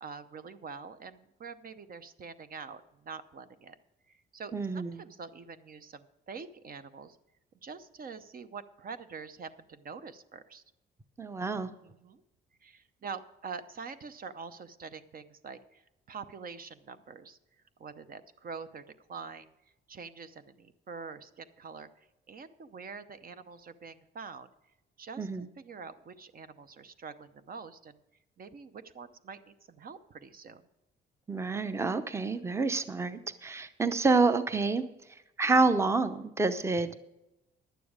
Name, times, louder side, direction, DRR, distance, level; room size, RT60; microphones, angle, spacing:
voice 1, 0.0-3.8 4.1-7.2 7.6-10.6 11.8-12.2 12.6-17.4 17.8-18.8 19.1-19.5 19.9-24.5 25.0-28.0 28.4-30.6, right 5 dB, 45° right, 11 dB, 0.7 m, -45 dB
voice 2, 4.5-5.0 11.2-11.7 25.2-25.5 31.3-34.8 35.1-37.0, right 3 dB, 15° right, 11 dB, 0.7 m, -28 dB
11.5 x 9.2 x 4.9 m, 0.92 s
cardioid pair, 90°, 20 cm